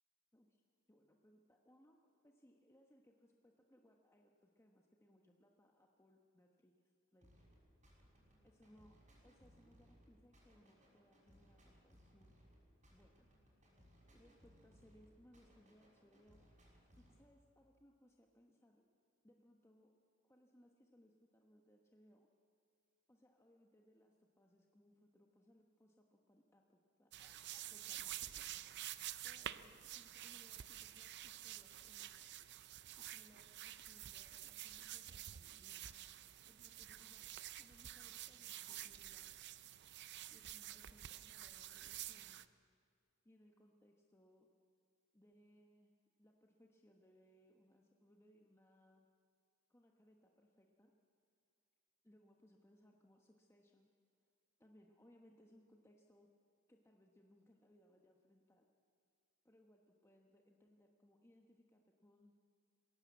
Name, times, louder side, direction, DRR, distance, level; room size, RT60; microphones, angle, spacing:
voice 1, 0.9-2.0 2.2-7.5 8.4-12.3 12.9-13.3 14.1-16.5 17.0-18.8 19.2-19.9 20.2-22.3 23.1-28.8 29.2-32.4 33.0-35.9 36.5-37.3 37.6-39.5 40.3-42.5 43.2-44.5 45.1-45.9 46.2-49.1 49.7-50.9 52.0-53.9 54.6-56.3 56.7-58.7 59.4-62.3, equal, 10° left, 1 dB, 1.1 m, -69 dB
sound 1, 7.2-17.2, equal, 35° right, 6.1 m, -67 dB
sound 2, 27.1-42.5, right 12 dB, 50° right, 0.6 m, -50 dB
21.0 x 17.0 x 8.3 m, 2.4 s
head